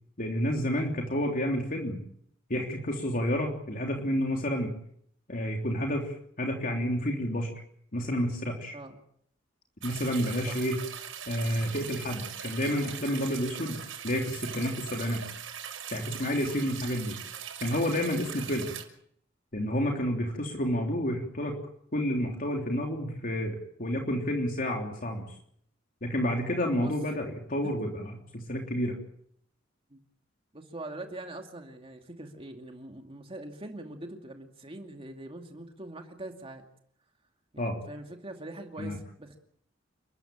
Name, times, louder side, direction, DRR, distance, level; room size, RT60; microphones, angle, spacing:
voice 1, 0.2-2.0 2.5-4.7 5.3-7.5 7.9-8.8 9.8-10.8 11.3-15.2 15.9-17.2 17.6-18.7 19.5-21.6 21.9-25.2 26.0-29.0 37.6-37.8 38.8-39.0, equal, 45° left, 1 dB, 3.4 m, -30 dB
sound 1, 9.8-18.8, right 8 dB, 85° right, 5.9 m, -41 dB
voice 2, 30.5-36.6 37.5-39.4, right 1 dB, 30° right, 4 dB, 2.5 m, -43 dB
29.5 x 14.0 x 8.8 m, 0.67 s
head